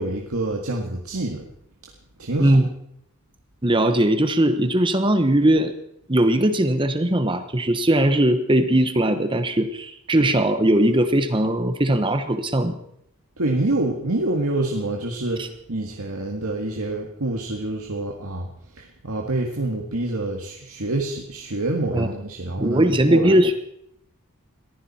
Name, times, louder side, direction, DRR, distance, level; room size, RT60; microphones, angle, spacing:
voice 1, 0.0-1.4 2.2-2.6 10.2-10.3 13.4-18.5 18.8-23.4, right 2 dB, 75° right, 1 dB, 1.9 m, -27 dB
voice 2, 2.4-2.7 3.6-5.7 6.1-12.8 15.4-15.5 21.9-22.1 22.6-23.6, right 1 dB, 20° right, 9 dB, 1.1 m, -19 dB
22.0 x 15.0 x 4.3 m, 0.73 s
head